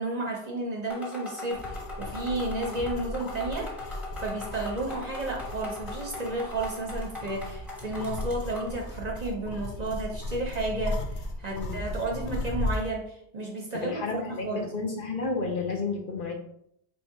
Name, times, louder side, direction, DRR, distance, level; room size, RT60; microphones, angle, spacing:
voice 1, 0.0-14.7, right 2 dB, 45° right, 0 dB, 0.7 m, -32 dB
sound 1, 0.9-8.8, left 3 dB, ahead, 1.0 m, -40 dB
sound 2, 1.5-12.9, left 2 dB, 90° left, 0.9 m, -36 dB
voice 2, 13.7-16.3, left 4 dB, 55° left, 2 dB, 0.8 m, -31 dB
3.3 x 2.7 x 4.5 m, 0.71 s
omnidirectional pair, 1.1 m